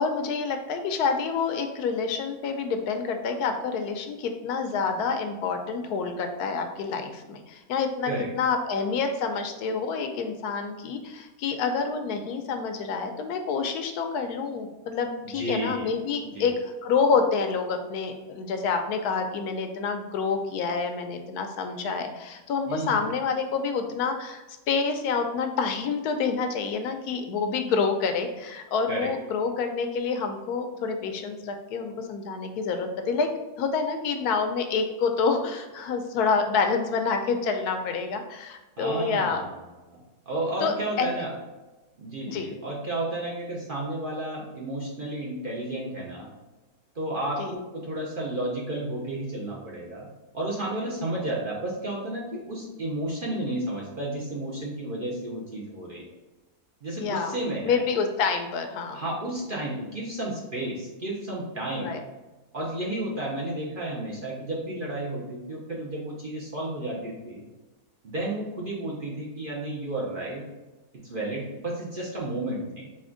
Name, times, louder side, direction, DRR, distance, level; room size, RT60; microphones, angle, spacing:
voice 1, 0.0-33.3 33.6-39.4 40.6-41.2 42.3-42.5 47.4-47.5 57.0-57.3 57.6-59.0 61.8-62.0, left 5 dB, 85° left, 6 dB, 1.1 m, -28 dB
voice 2, 15.3-15.9 16.2-16.5 22.7-23.1 28.9-29.1 38.8-39.5 39.9-40.0 40.3-41.3 42.0-46.3 46.9-50.1 50.3-56.0 56.8-57.8 58.9-61.9 62.5-67.4 68.0-70.4 71.0-72.9, right 1 dB, 45° right, -3 dB, 0.8 m, -32 dB
4.2 x 2.9 x 3.7 m, 1.1 s
omnidirectional pair, 1.6 m